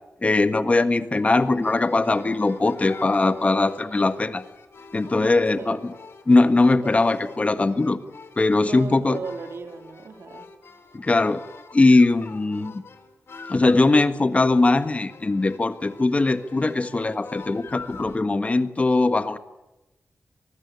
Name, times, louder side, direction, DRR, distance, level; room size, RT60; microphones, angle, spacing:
voice 1, 0.2-4.4 4.9-5.8 6.3-8.0 8.4-9.2 10.9-11.4 11.7-12.8 13.5-19.4, left 2 dB, 30° left, 11 dB, 1.5 m, -20 dB
sound 1, 1.1-18.2, left 4 dB, 60° left, 3.0 m, -44 dB
voice 2, 5.0-5.8 6.8-6.9 8.7-10.5, right 5 dB, 65° right, 7 dB, 2.7 m, -37 dB
25.0 x 20.0 x 9.7 m, 1.0 s
wide cardioid pair, 125°, 5 cm